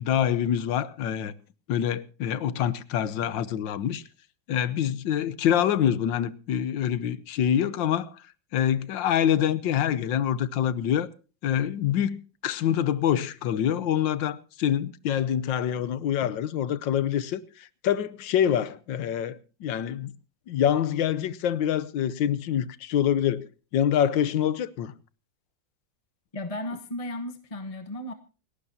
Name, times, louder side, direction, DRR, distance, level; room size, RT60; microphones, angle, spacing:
voice 1, 0.0-1.3 1.7-4.0 4.5-8.1 8.5-11.1 11.4-12.2 12.4-20.1 20.5-23.5 23.7-24.9, left 10 dB, 80° left, 1.6 m, -26 dB
voice 2, 26.3-28.1, left 1 dB, 25° left, 1.0 m, -34 dB
28.5 x 11.5 x 2.8 m
omnidirectional pair, 2.0 m